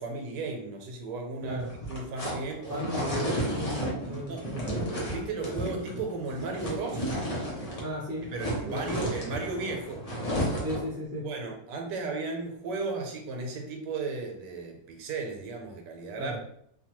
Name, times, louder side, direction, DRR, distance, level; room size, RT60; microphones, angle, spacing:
voice 1, 0.0-1.6 1.9-2.8 4.1-4.4 5.1-7.0 8.3-10.0 11.2-16.4, right 3 dB, 85° right, 2 dB, 1.3 m, -35 dB
sound 1, 1.6-10.9, equal, 55° left, 0.4 m, -33 dB
voice 2, 2.7-4.9 7.8-8.3 8.7-9.1 10.6-11.3 16.2-16.4, equal, 15° right, -5 dB, 0.5 m, -35 dB
2.9 x 2.2 x 2.9 m, 0.71 s
omnidirectional pair, 1.8 m